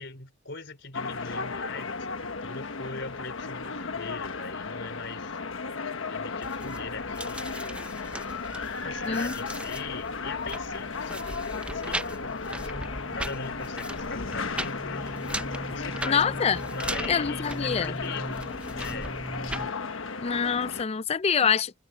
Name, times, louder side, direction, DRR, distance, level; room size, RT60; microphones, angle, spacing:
voice 1, 0.0-5.4 6.1-8.0 8.8-15.2 15.7-16.2 16.6-18.4 18.7-19.1, left 4 dB, 60° left, 4.5 m, -41 dB
sound 1, 0.9-20.8, left 4 dB, 90° left, 1.2 m, -35 dB
sound 2, 6.4-19.7, right 1 dB, 5° right, 0.7 m, -38 dB
voice 2, 9.0-9.3 16.0-16.6 17.1-18.0 20.2-21.7, left 6 dB, 30° left, 0.4 m, -25 dB
head